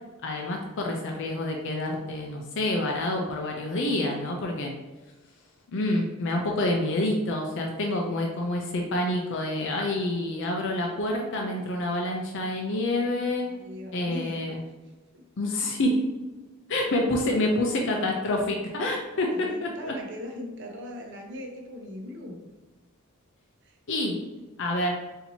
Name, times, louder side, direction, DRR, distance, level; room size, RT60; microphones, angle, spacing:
voice 1, 0.2-4.7 5.7-13.5 13.9-14.6 15.4-16.0 16.7-19.9 23.9-24.2 24.6-24.9, left 1 dB, 60° left, 0 dB, 0.5 m, -27 dB
voice 2, 13.4-14.5 15.1-15.2 19.1-22.5 23.6-23.8, equal, 60° right, 1 dB, 0.7 m, -40 dB
4.3 x 2.8 x 2.7 m, 1.2 s
head